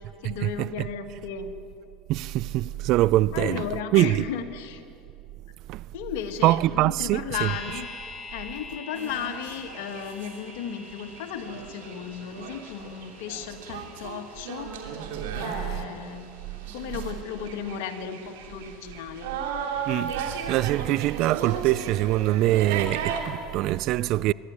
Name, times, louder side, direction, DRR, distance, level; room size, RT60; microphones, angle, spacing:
voice 1, 0.2-1.5 3.3-4.8 5.9-7.9 8.3-14.7 15.3-16.3 16.7-19.3, left 8 dB, 75° left, 1.9 m, -35 dB
voice 2, 2.1-3.6 3.9-4.3 5.7-5.8 6.4-7.5 19.9-24.3, right 16 dB, 60° right, 0.4 m, -23 dB
sound 1, 7.3-17.4 17.6-17.7, left 3 dB, 15° left, 6.1 m, -46 dB
sound 2, 8.9-23.2, right 6 dB, 85° right, 2.7 m, -36 dB
24.0 x 12.0 x 9.6 m
supercardioid pair, 105°, 0 cm